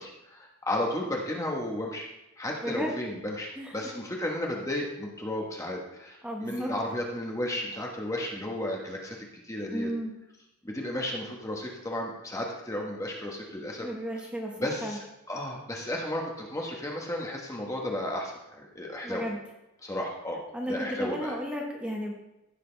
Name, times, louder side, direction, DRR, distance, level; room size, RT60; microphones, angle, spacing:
voice 1, 0.0-2.1 2.4-9.2 9.4-9.9 10.6-13.9 14.6-19.2 19.8-20.4 20.7-21.3, left 1 dB, 15° left, -1 dB, 1.2 m, -33 dB
voice 2, 2.6-2.9 3.6-3.9 6.2-6.7 9.7-10.1 13.8-14.5 14.8-15.0 19.0-19.4 20.5-22.1, equal, 5° right, -1 dB, 1.2 m, -33 dB
15.0 x 6.7 x 3.3 m, 0.90 s
head